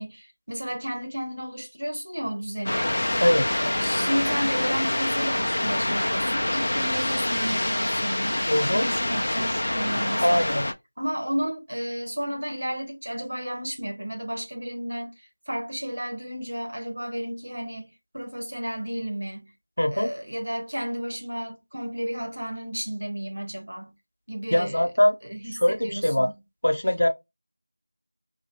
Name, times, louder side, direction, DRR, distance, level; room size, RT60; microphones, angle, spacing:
voice 1, 0.0-3.0 3.6-10.6 11.0-15.1 15.5-19.5 19.9-23.9 24.3-24.9 25.3-26.4, equal, 70° right, 1.5 m, -32 dB
sound 1, 2.7-10.7, left 1 dB, 45° left, 0.4 m, -26 dB
voice 2, 8.5-8.9 10.2-10.6 19.8-20.1 24.5-25.1 25.5-26.3 26.6-27.1, left 1 dB, 75° left, 0.8 m, -22 dB
3.0 x 2.7 x 2.9 m
figure-of-eight pair, 175°, 0 cm